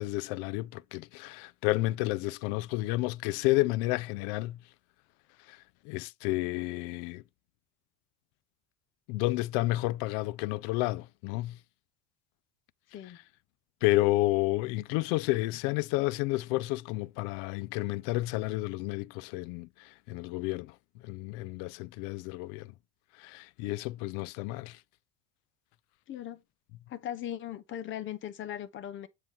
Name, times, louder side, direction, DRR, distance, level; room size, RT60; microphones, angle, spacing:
voice 1, 0.0-4.6 5.5-7.2 9.1-11.6 13.8-20.8 21.0-22.7 23.2-24.8, left 19 dB, 75° left, 0.4 m, -31 dB
voice 2, 26.1-26.4 26.9-29.1, left 11 dB, 40° left, 0.9 m, -38 dB
8.8 x 3.0 x 5.5 m
supercardioid pair, 125°, 29 cm